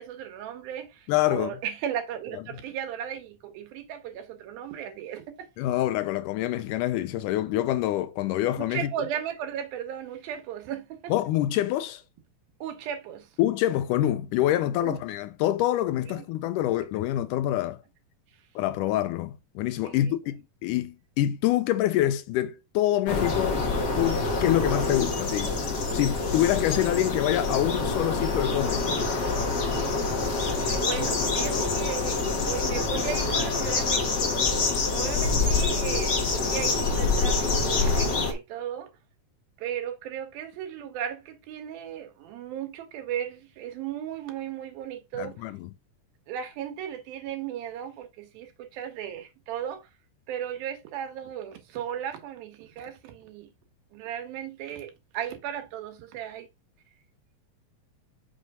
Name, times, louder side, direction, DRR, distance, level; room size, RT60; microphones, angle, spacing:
voice 1, 0.0-5.2 8.6-11.1 12.6-13.3 14.8-15.0 16.1-16.2 19.8-20.0 30.4-34.6 34.9-38.9 39.6-45.4 46.3-49.9 50.3-53.5 53.9-56.5, right 9 dB, 85° right, 3.0 m, -36 dB
voice 2, 1.1-1.5 5.6-8.9 11.1-12.0 13.4-17.8 18.6-23.6 24.0-25.6 25.9-29.0 45.2-45.7, left 13 dB, 80° left, 1.9 m, -26 dB
sound 1, 23.1-38.3, left 3 dB, 50° left, 1.3 m, -26 dB
6.3 x 3.2 x 5.3 m
omnidirectional pair, 4.1 m